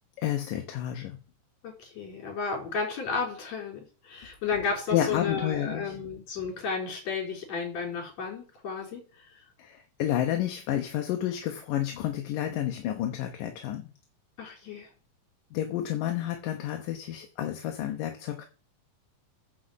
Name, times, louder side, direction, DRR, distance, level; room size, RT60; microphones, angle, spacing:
voice 1, 0.2-1.2 4.9-6.0 9.6-13.9 15.5-18.4, left 11 dB, 80° left, 4 dB, 2.7 m, -30 dB
voice 2, 1.6-9.0 14.4-14.9, left 5 dB, 55° left, 0 dB, 5.6 m, -33 dB
10.0 x 6.4 x 8.1 m, 0.38 s
omnidirectional pair, 3.9 m